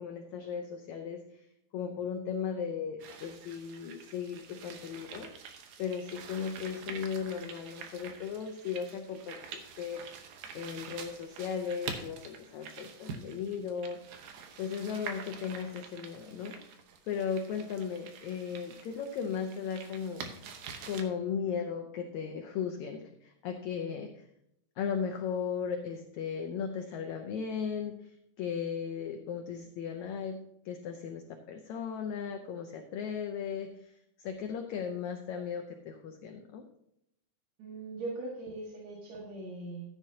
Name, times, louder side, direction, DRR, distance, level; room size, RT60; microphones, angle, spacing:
voice 1, 0.0-1.5 1.7-5.3 5.8-10.1 10.5-14.0 14.6-16.6 17.1-20.3 20.9-24.2 24.8-30.4 30.7-36.6, left 7 dB, 75° left, 4 dB, 1.7 m, -36 dB
sound 1, 3.0-21.0, right 6 dB, 75° right, 2.8 m, -46 dB
voice 2, 37.6-39.8, right 2 dB, 55° right, -4 dB, 2.9 m, -40 dB
14.0 x 9.7 x 2.8 m, 0.77 s
omnidirectional pair, 4.1 m